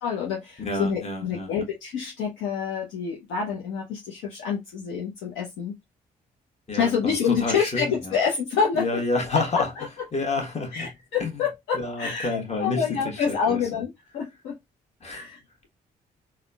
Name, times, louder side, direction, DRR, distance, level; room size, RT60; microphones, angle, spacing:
voice 1, 0.0-5.7 6.8-9.0 9.3-9.9 10.7-14.5 15.1-15.7, left 6 dB, 70° left, 0.7 m, -27 dB
voice 2, 0.6-1.6 6.7-8.2 8.8-9.7 10.1-10.9 11.2-11.3 11.7-13.6 15.0-15.2, left 3 dB, 30° left, 1.2 m, -29 dB
3.6 x 2.2 x 2.2 m
hypercardioid pair, 40°, 21 cm